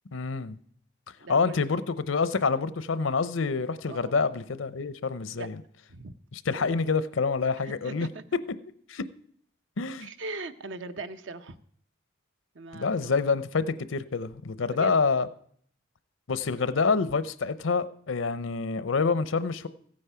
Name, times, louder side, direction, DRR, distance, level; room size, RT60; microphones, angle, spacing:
voice 1, 0.1-0.6 1.3-5.6 6.3-8.1 8.9-9.0 9.8-10.1 12.7-15.3 16.3-19.7, left 4 dB, 85° left, 0.7 m, -27 dB
voice 2, 1.2-1.6 3.9-4.2 5.4-5.5 5.9-6.1 6.5-6.9 7.6-8.2 10.0-11.6 12.5-13.1 14.7-15.0, right 3 dB, 75° right, 0.7 m, -40 dB
15.0 x 8.5 x 5.7 m
head